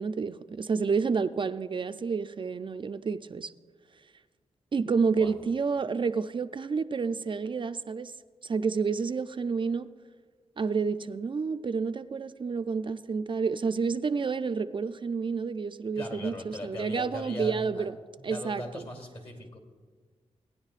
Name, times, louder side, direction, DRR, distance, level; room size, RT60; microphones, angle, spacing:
voice 1, 0.0-3.5 4.7-8.1 8.4-9.9 10.6-17.9 18.2-18.8, right 5 dB, 45° right, 10 dB, 0.4 m, -29 dB
voice 2, 15.9-17.9 18.2-19.6, left 1 dB, 50° left, 3 dB, 2.6 m, -39 dB
17.5 x 10.0 x 2.4 m, 1.5 s
cardioid pair, 75°, 12 cm